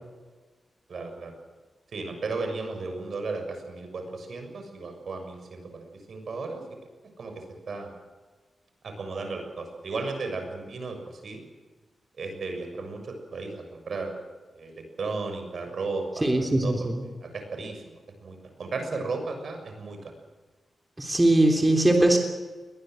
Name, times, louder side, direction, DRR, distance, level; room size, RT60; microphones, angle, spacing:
voice 1, 0.9-1.3 1.9-6.6 7.2-7.9 8.8-11.4 12.2-14.1 14.5-20.1, right 3 dB, 65° right, 5 dB, 6.7 m, -35 dB
voice 2, 16.2-17.0 21.0-22.2, right 1 dB, 15° right, 3 dB, 3.3 m, -21 dB
21.5 x 19.5 x 7.8 m, 1.3 s
wide cardioid pair, 95°, 0 cm